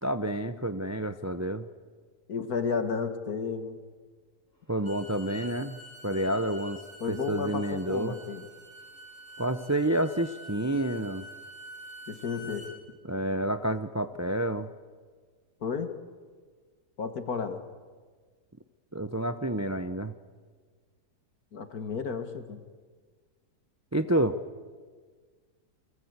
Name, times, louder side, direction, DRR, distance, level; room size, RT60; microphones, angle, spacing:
voice 1, 0.0-1.7 4.7-6.8 7.1-8.2 9.4-11.3 13.0-14.7 18.9-20.1 23.9-24.4, right 1 dB, 25° right, 10 dB, 0.3 m, -29 dB
voice 2, 2.3-3.8 7.0-8.5 12.1-12.7 15.6-15.9 17.0-17.6 21.5-22.6, left 5 dB, 60° left, 8 dB, 2.0 m, -32 dB
Bowed string instrument, 4.7-12.7, right 1 dB, 45° left, 4.7 m, -47 dB
29.0 x 23.0 x 8.2 m, 1.5 s
omnidirectional pair, 1.8 m